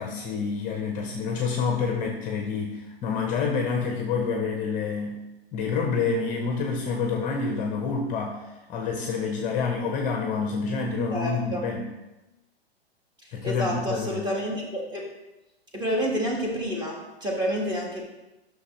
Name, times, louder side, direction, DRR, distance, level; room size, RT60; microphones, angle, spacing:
voice 1, 0.0-5.2 5.5-11.9 13.3-14.2, left 5 dB, 25° left, 2 dB, 0.9 m, -28 dB
voice 2, 11.1-11.6 13.4-15.0 15.7-18.0, equal, 15° right, -1 dB, 1.8 m, -28 dB
9.7 x 6.3 x 3.2 m, 1.0 s
hypercardioid pair, 135°, 31 cm